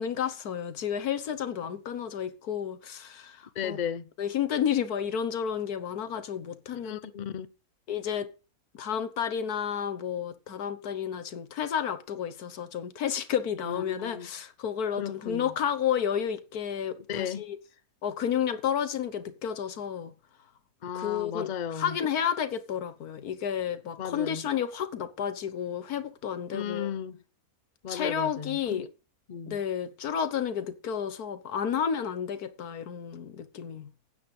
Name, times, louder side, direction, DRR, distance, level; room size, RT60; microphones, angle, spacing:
voice 1, 0.0-3.8 4.2-7.0 7.9-8.3 8.7-17.6 18.0-20.1 20.9-21.5 21.8-26.9 27.9-28.8 29.5-33.9, left 8 dB, 85° left, 1.6 m, -31 dB
voice 2, 3.5-4.1 6.8-7.5 13.6-14.3 15.0-15.5 17.1-17.4 20.8-22.0 24.0-24.4 26.5-27.2 27.8-28.9 29.3-29.6, left 8 dB, 40° left, 0.7 m, -35 dB
9.5 x 8.9 x 5.3 m
omnidirectional pair, 1.6 m